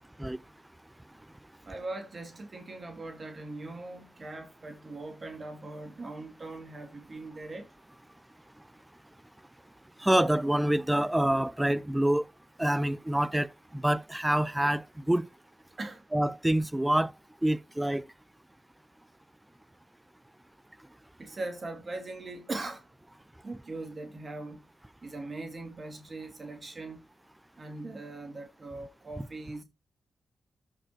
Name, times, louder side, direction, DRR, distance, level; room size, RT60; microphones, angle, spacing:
voice 1, 1.6-7.7 15.8-16.0 21.2-22.8 23.4-24.6 25.0-27.0 27.6-29.6, right 2 dB, 50° right, 2.5 m, -40 dB
voice 2, 10.0-12.3 12.6-13.5 13.7-15.3 16.1-17.1 17.4-18.0, right 1 dB, 10° right, 0.7 m, -26 dB
13.5 x 5.8 x 2.9 m
supercardioid pair, 40°, 0 cm